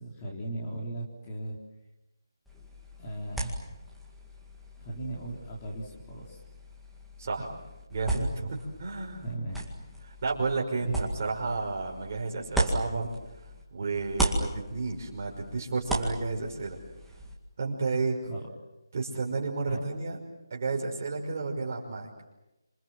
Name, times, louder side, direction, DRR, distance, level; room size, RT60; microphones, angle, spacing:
voice 1, 0.0-1.6 3.0-3.6 4.8-6.4 9.2-9.6 10.8-10.9 18.2-18.5 19.7-19.8, right 2 dB, 20° left, -2 dB, 3.9 m, -37 dB
sound 1, 2.5-13.6 13.9-17.3, right 1 dB, ahead, 2.2 m, -36 dB
voice 2, 7.2-7.5 7.9-9.2 10.1-13.1 13.7-16.8 17.6-18.2 18.9-20.2 20.5-22.3, right 3 dB, 35° right, 1 dB, 5.5 m, -32 dB
28.5 x 27.5 x 7.6 m, 0.98 s
figure-of-eight pair, 170°, 2 cm